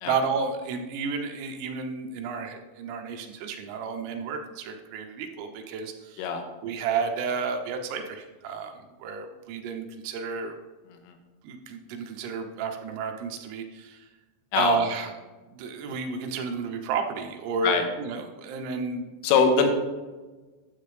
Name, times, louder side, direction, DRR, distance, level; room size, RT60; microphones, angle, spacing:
voice 1, 0.1-6.3 6.6-8.7 9.0-10.6 11.4-14.1 14.5-15.1 15.5-19.1, right 5 dB, 85° right, 4 dB, 3.6 m, -31 dB
voice 2, 19.2-19.7, left 5 dB, 85° left, 5 dB, 3.6 m, -22 dB
12.0 x 7.7 x 3.3 m, 1.2 s
omnidirectional pair, 5.8 m